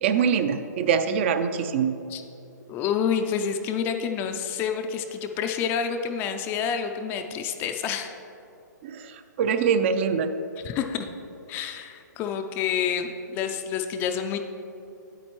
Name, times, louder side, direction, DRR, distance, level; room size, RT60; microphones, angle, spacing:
voice 1, 0.0-1.9 8.8-10.3, right 7 dB, 40° right, 10 dB, 0.4 m, -24 dB
voice 2, 2.7-8.1 10.6-11.1 11.5-14.4, left 7 dB, 20° left, 6 dB, 0.4 m, -28 dB
8.9 x 8.5 x 3.1 m, 2.8 s
hypercardioid pair, 145°, 10 cm